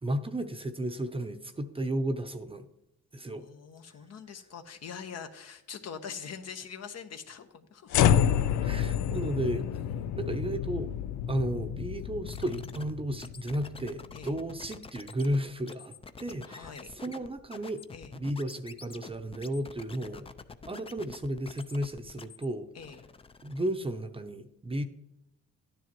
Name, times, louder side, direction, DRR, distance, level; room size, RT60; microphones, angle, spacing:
voice 1, 0.0-2.7 3.1-3.5 8.6-9.7 10.2-10.9 11.3-16.7 17.0-17.8 18.1-20.3 20.7-22.7 23.4-24.8, right 1 dB, 20° right, 7 dB, 0.7 m, -33 dB
voice 2, 3.3-7.9 9.7-10.0 14.1-14.3 16.5-16.9 17.9-18.1 22.7-23.0, left 7 dB, 55° left, 7 dB, 1.1 m, -43 dB
sound 1, 7.9-14.2, left 9 dB, 85° left, 0.5 m, -29 dB
sound 2, 12.3-22.5 22.8-23.7, left 4 dB, 20° left, 0.5 m, -47 dB
12.0 x 10.0 x 3.0 m, 0.85 s
cardioid pair, 90°, 30 cm